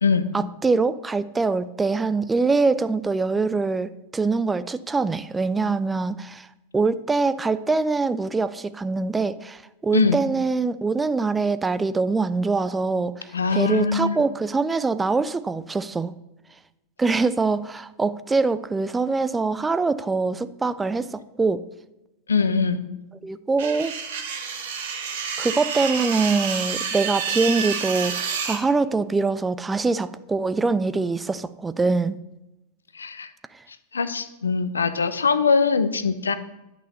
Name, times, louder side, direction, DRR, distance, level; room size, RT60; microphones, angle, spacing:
voice 1, 0.3-6.5 6.7-16.1 17.0-21.6 23.2-24.0 25.4-32.2 33.5-33.6, right 4 dB, 10° right, 14 dB, 0.4 m, -24 dB
voice 2, 13.3-14.2 22.3-22.8 32.9-33.3 33.9-36.4, left 5 dB, 75° left, 12 dB, 0.7 m, -22 dB
sound 1, 23.6-28.6, right 6 dB, 55° right, 1.7 m, -29 dB
11.0 x 6.2 x 6.7 m, 0.97 s
figure-of-eight pair, 90°, 0 cm